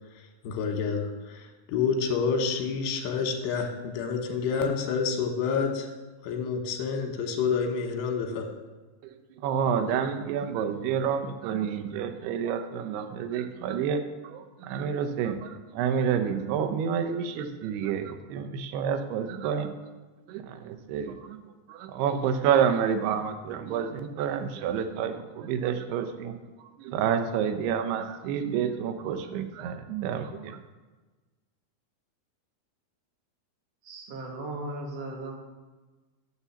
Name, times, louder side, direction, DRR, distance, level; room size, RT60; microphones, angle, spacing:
voice 1, 0.4-5.9 6.2-8.5, left 5 dB, 90° left, 4 dB, 3.2 m, -28 dB
voice 2, 9.4-19.7 20.3-21.4 21.7-26.3 26.8-30.6, right 7 dB, 85° right, 7 dB, 2.8 m, -29 dB
voice 3, 33.8-35.3, right 2 dB, 50° right, 0 dB, 2.1 m, -37 dB
7.1 x 6.8 x 7.0 m, 1.2 s
omnidirectional pair, 4.6 m